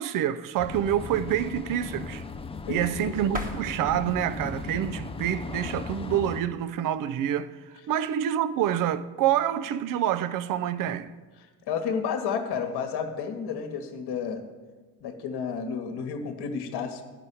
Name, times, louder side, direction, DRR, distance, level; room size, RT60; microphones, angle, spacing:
voice 1, 0.0-2.2 2.7-7.5 7.9-11.1, right 10 dB, 45° right, 0.6 m, -27 dB
sound 1, 0.6-6.4, left 3 dB, 15° left, 0.5 m, -37 dB
voice 2, 2.7-3.2 11.7-14.4 15.0-17.0, left 6 dB, 55° left, 1.3 m, -31 dB
sound 2, 3.3-6.1, equal, 15° right, 1.3 m, -40 dB
10.0 x 5.4 x 7.7 m
hypercardioid pair, 55°, 48 cm